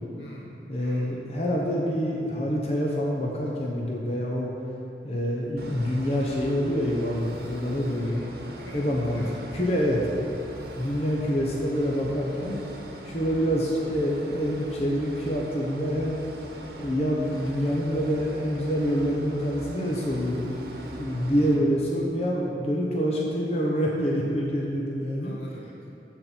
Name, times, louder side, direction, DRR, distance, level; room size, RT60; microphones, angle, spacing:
voice 1, 0.2-1.2 7.9-9.4 21.3-21.7 25.2-25.7, equal, 85° left, -4 dB, 2.1 m, -45 dB
voice 2, 0.7-4.5 5.0-8.2 8.7-9.2 9.5-10.2 10.8-12.6 13.0-16.2 16.8-20.7 21.0-25.3, equal, 35° left, -3 dB, 0.9 m, -26 dB
sound 1, 5.6-21.6, right 1 dB, 55° right, 1.1 m, -41 dB
13.5 x 4.5 x 5.9 m, 2.8 s
head